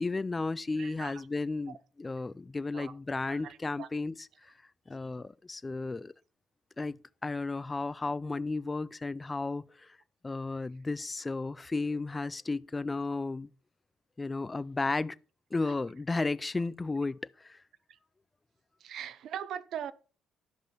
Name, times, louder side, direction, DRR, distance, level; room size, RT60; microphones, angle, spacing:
voice 1, 0.0-4.5 4.9-6.1 6.8-10.0 10.2-13.5 14.2-15.2 15.5-17.6, left 3 dB, 20° left, 0.4 m, -34 dB
voice 2, 0.8-1.1 2.7-2.9 3.2-3.9 18.8-19.9, right 9 dB, 65° right, 0.6 m, -40 dB
12.0 x 5.3 x 4.5 m
cardioid pair, 105°, 0 cm